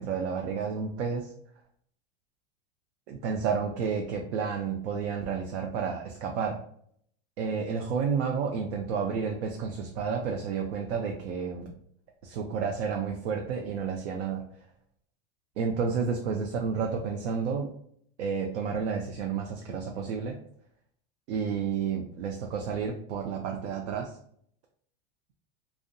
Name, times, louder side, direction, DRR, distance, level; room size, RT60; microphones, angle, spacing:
voice 1, 0.0-1.3 3.1-6.6 7.4-11.7 12.2-14.4 15.6-17.7 18.2-20.4 21.3-24.2, right 6 dB, 85° right, 2 dB, 0.5 m, -31 dB
2.6 x 2.1 x 2.5 m, 0.65 s
supercardioid pair, 150°, 33 cm